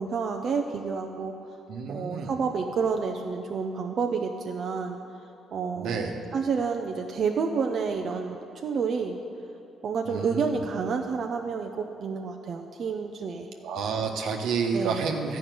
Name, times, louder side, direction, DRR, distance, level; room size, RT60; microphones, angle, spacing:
voice 1, 0.0-1.3 1.9-5.0 5.5-6.0 6.3-8.4 8.6-9.2 9.8-13.5 14.7-15.0, right 5 dB, 55° right, 2 dB, 0.7 m, -29 dB
voice 2, 1.7-2.3 5.7-6.2 10.1-10.6 13.6-15.4, right 5 dB, 85° right, 2 dB, 1.2 m, -29 dB
12.5 x 5.7 x 9.3 m, 2.9 s
cardioid pair, 90°, 0 cm